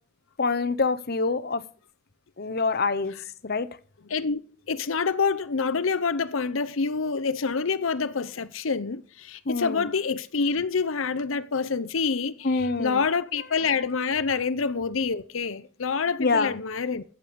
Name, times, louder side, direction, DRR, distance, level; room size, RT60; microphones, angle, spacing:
voice 1, 0.4-1.6 2.4-3.1 3.4-3.7 9.5-9.9 12.4-13.0 16.2-16.6, left 4 dB, 50° left, 1.0 m, -25 dB
voice 2, 4.1-4.4 4.7-17.0, left 5 dB, 80° left, 0.7 m, -27 dB
14.5 x 8.2 x 5.2 m
head